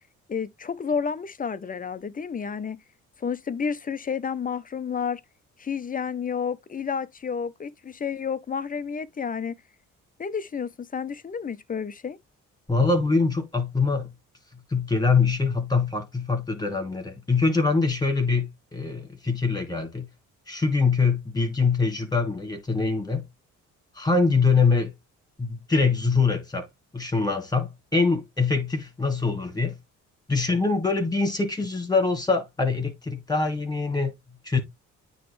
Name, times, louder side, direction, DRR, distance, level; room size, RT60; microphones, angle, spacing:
voice 1, 0.3-2.8 3.2-5.2 5.6-9.5 10.2-12.2, left 6 dB, 30° left, 0.7 m, -30 dB
voice 2, 12.7-14.1 14.7-20.1 20.5-23.2 24.0-24.9 25.4-26.7 26.9-29.8 30.3-34.1 34.4-34.6, left 4 dB, 15° left, 2.7 m, -24 dB
9.4 x 3.2 x 3.1 m
cardioid pair, 90°, 30 cm